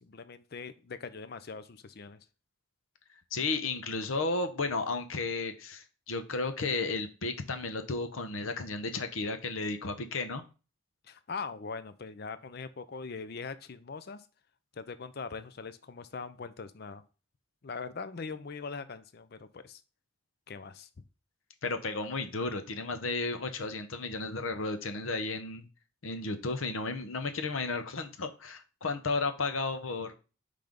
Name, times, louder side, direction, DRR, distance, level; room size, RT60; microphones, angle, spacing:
voice 1, 0.0-2.2 11.0-14.3 14.8-17.0 17.6-19.8 20.5-20.9, left 4 dB, 50° left, 13 dB, 0.5 m, -41 dB
voice 2, 3.3-10.4 21.6-25.7 26.0-30.1, left 3 dB, 75° left, 8 dB, 0.8 m, -33 dB
5.8 x 3.4 x 5.1 m, 0.33 s
head